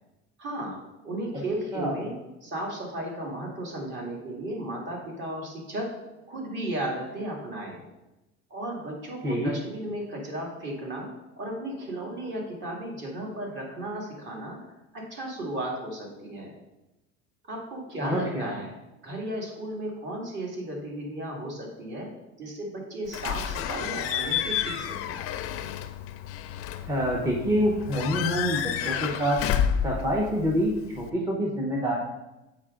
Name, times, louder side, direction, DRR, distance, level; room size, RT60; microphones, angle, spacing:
voice 1, 0.4-0.8 1.0-2.1 2.4-5.9 6.3-7.8 8.5-11.1 11.4-14.6 14.9-16.5 17.5-18.7 19.0-22.1 22.4-25.2, right 1 dB, 40° right, -1 dB, 2.1 m, -34 dB
voice 2, 18.0-18.5 26.9-29.4 29.8-32.0, equal, 10° right, -2 dB, 0.8 m, -26 dB
Slam / Squeak / Alarm, 23.1-31.1, left 9 dB, 50° left, 0.5 m, -30 dB
7.3 x 5.0 x 3.7 m, 0.99 s
cardioid pair, 140°, 29 cm